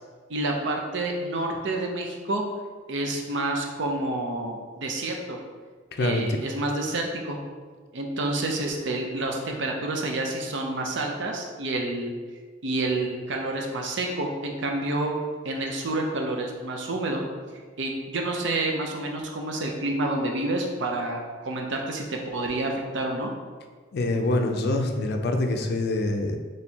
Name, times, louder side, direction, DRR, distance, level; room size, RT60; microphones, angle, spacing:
voice 1, 0.3-2.4 2.9-5.4 6.0-7.4 7.9-12.1 12.6-15.1 15.4-17.2 17.8-23.3, right 2 dB, 65° right, 1 dB, 0.6 m, -29 dB
voice 2, 5.9-6.3 23.9-26.4, left 2 dB, 55° left, 4 dB, 0.4 m, -25 dB
4.4 x 3.1 x 2.8 m, 1.5 s
head